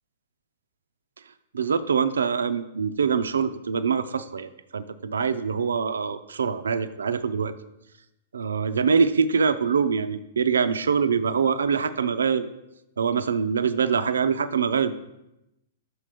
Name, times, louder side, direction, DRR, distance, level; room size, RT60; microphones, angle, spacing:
voice 1, 1.5-7.5 8.3-12.5 13.0-15.0, right 6 dB, 85° right, 12 dB, 0.4 m, -24 dB
6.1 x 5.0 x 4.9 m, 0.90 s
hypercardioid pair, 125°, 0 cm